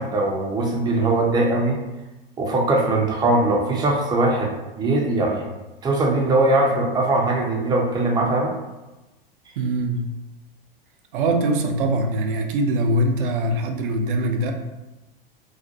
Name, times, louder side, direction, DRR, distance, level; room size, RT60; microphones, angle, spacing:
voice 1, 0.0-1.8 2.4-5.5 5.8-8.5, right 2 dB, 15° right, 0 dB, 0.4 m, -21 dB
voice 2, 9.6-10.1 11.1-14.5, right 1 dB, 60° right, 4 dB, 0.5 m, -22 dB
2.4 x 2.1 x 2.6 m, 1.1 s
hypercardioid pair, 100°, 29 cm